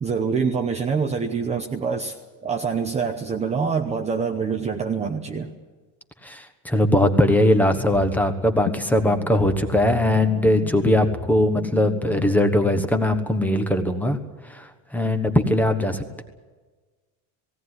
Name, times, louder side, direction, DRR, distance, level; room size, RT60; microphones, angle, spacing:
voice 1, 0.0-2.2 2.4-5.5, right 5 dB, 20° right, 3 dB, 0.9 m, -25 dB
voice 2, 6.2-14.2 14.5-16.2, left 1 dB, 5° left, 7 dB, 1.2 m, -20 dB
sound 1, 7.8-12.8, left 8 dB, 25° left, 0.6 m, -35 dB
18.0 x 17.5 x 9.7 m, 1.3 s
cardioid pair, 165°, 37 cm